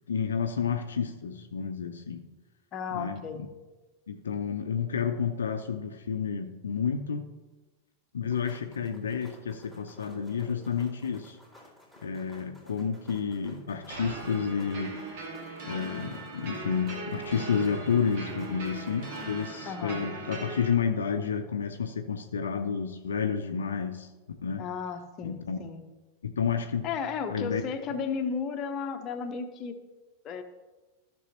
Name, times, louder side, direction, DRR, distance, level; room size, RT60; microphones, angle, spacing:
voice 1, 0.1-2.2 2.9-3.2 4.1-7.3 8.1-11.4 12.0-15.0 15.6-24.1 24.4-24.7 25.2-25.6 26.2-26.9 27.3-27.6, left 6 dB, 70° left, 6 dB, 0.5 m, -30 dB
voice 2, 2.7-3.5 19.7-20.1 24.6-25.8 26.8-29.7 30.2-30.4, left 6 dB, 35° left, 6 dB, 0.8 m, -34 dB
sound 1, 8.2-19.6, left 1 dB, 10° right, 2.6 m, -55 dB
sound 2, 13.9-20.7, right 3 dB, 50° right, 1.7 m, -39 dB
14.0 x 6.1 x 3.0 m, 1.2 s
figure-of-eight pair, 90°, 0 cm